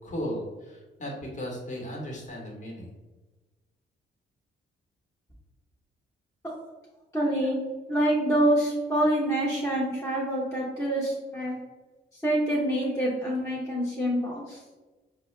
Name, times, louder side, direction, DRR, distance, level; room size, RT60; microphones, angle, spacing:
voice 1, 0.0-2.9, equal, 40° left, -1 dB, 1.2 m, -36 dB
voice 2, 7.1-7.6 7.9-11.6 12.2-14.6, right 1 dB, 15° left, -7 dB, 0.9 m, -26 dB
4.5 x 2.0 x 3.2 m, 1.2 s
cardioid pair, 80°, 20 cm